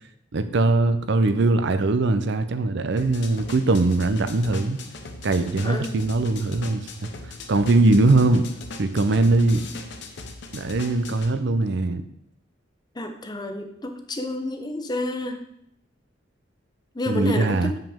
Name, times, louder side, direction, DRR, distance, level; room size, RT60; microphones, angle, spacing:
voice 1, 0.3-4.8 5.2-6.9 7.5-8.5 8.8-9.6 10.5-12.0 17.1-17.7, right 2 dB, 65° right, 10 dB, 0.6 m, -21 dB
sound 1, 3.0-11.3, left 3 dB, 65° left, 0.8 m, -40 dB
voice 2, 5.6-6.1 12.9-15.4 16.9-17.8, left 1 dB, 20° left, 6 dB, 0.7 m, -30 dB
7.3 x 5.6 x 3.5 m, 0.75 s
head